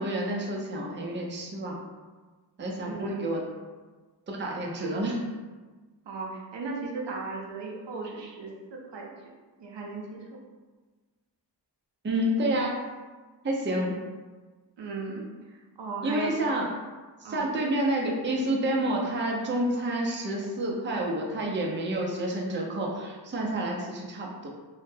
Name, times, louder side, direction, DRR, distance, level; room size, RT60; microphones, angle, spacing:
voice 1, 0.0-1.8 2.6-3.4 4.3-5.2 12.0-12.8 13.4-13.9 16.0-16.7 17.2-24.5, right 1 dB, 30° right, -1 dB, 0.4 m, -29 dB
voice 2, 2.8-3.1 6.1-9.1 9.6-10.2 14.8-16.3 17.2-17.5, right 4 dB, 80° right, -1 dB, 0.5 m, -37 dB
2.1 x 2.0 x 3.1 m, 1.3 s
wide cardioid pair, 50°, 42 cm